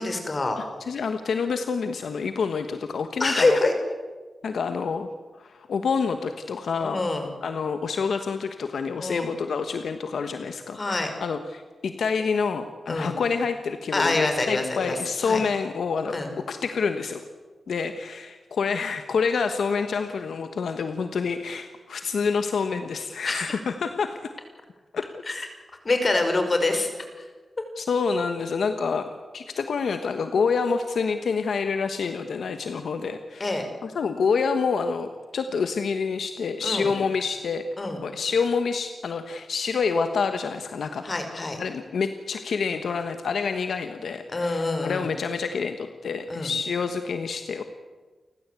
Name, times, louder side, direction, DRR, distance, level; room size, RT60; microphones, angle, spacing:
voice 1, 0.0-0.6 3.2-3.8 6.8-7.3 9.0-9.3 10.7-11.1 12.9-13.2 13.9-15.4 16.1-16.3 23.2-23.6 25.3-25.5 25.8-27.2 33.4-33.7 36.6-36.9 37.8-38.0 41.0-41.6 44.3-45.1 46.3-46.5, left 2 dB, 40° left, 6 dB, 5.3 m, -26 dB
voice 2, 0.6-3.6 4.4-5.1 5.4-7.0 7.4-16.2 16.5-17.2 17.7-24.3 24.9-25.0 27.8-29.1 29.3-33.6 33.8-37.6 38.0-41.0 41.6-47.6, left 5 dB, 85° left, 8 dB, 1.3 m, -27 dB
29.5 x 14.5 x 8.3 m, 1.3 s
cardioid pair, 65°, 0 cm